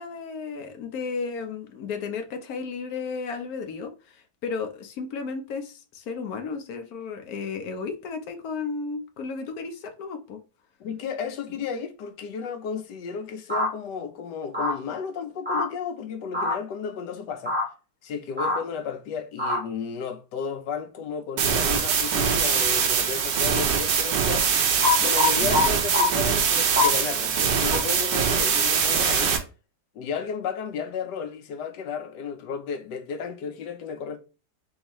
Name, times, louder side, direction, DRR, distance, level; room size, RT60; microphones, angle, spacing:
voice 1, 0.0-10.4 25.4-25.7, left 5 dB, 65° left, 1.2 m, -34 dB
voice 2, 10.8-17.6 18.0-24.5 25.0-29.4 29.9-34.2, left 6 dB, 80° left, 1.4 m, -33 dB
sound 1, 13.5-13.7 14.5-14.7 15.5-15.6 16.3-16.5 17.5-17.6 18.4-18.6 19.4-19.6 24.8-25.6 25.9-26.1 26.8-26.9 27.7-27.8, left 3 dB, 5° right, 1.2 m, -23 dB
sound 2, 21.4-29.4, right 7 dB, 85° right, 1.4 m, -23 dB
3.9 x 3.6 x 3.0 m
omnidirectional pair, 1.8 m